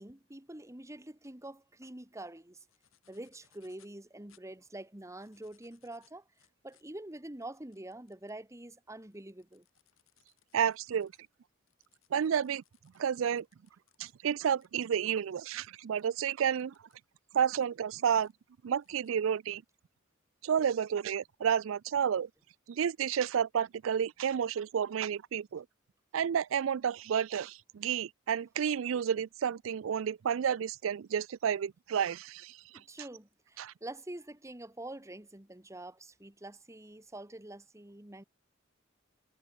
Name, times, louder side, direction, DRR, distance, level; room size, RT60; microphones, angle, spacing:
voice 1, 0.0-2.6 3.1-6.2 6.6-9.6 32.7-38.2, right 1 dB, 15° right, 1.6 m, -46 dB
sound 1, 2.6-4.0 4.3-4.4 5.0-8.4 8.9-14.1 14.6-14.9 15.6-15.7 16.0-16.1 16.6-17.0 17.4-18.3 18.8-19.1, left 11 dB, 90° left, 6.0 m, -70 dB
voice 2, 10.5-11.1 12.1-12.6 13.0-13.4 14.0-16.7 17.3-18.3 18.6-19.6 20.4-22.3 22.7-25.6 26.1-32.6 33.6-33.7, right 8 dB, 75° right, 0.4 m, -31 dB
head